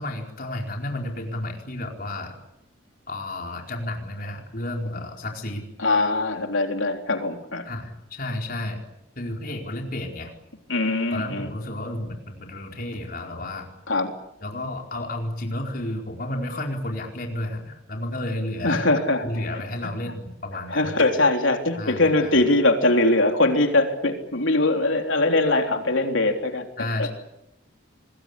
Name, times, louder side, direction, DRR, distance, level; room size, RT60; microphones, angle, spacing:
voice 1, 0.0-2.3 3.1-5.7 7.6-8.8 9.2-10.3 11.1-13.7 14.4-18.8 19.2-21.0 21.8-22.4 26.8-27.1, left 1 dB, 45° left, 1 dB, 4.7 m, -32 dB
voice 2, 5.8-7.7 10.7-11.5 13.9-14.1 18.6-19.3 20.7-26.7 27.0-27.1, left 2 dB, 80° left, 4 dB, 3.7 m, -21 dB
26.0 x 21.0 x 8.5 m, 0.85 s
head